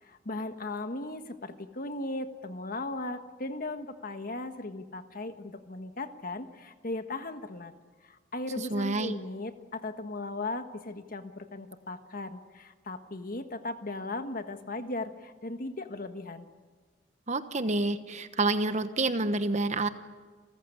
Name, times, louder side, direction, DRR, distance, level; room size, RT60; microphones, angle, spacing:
voice 1, 0.0-7.7 8.0-16.5, left 2 dB, 50° left, 8 dB, 1.5 m, -37 dB
voice 2, 8.7-9.1 17.3-19.9, right 2 dB, 40° right, 10 dB, 1.1 m, -28 dB
29.5 x 14.5 x 9.9 m, 1.4 s
head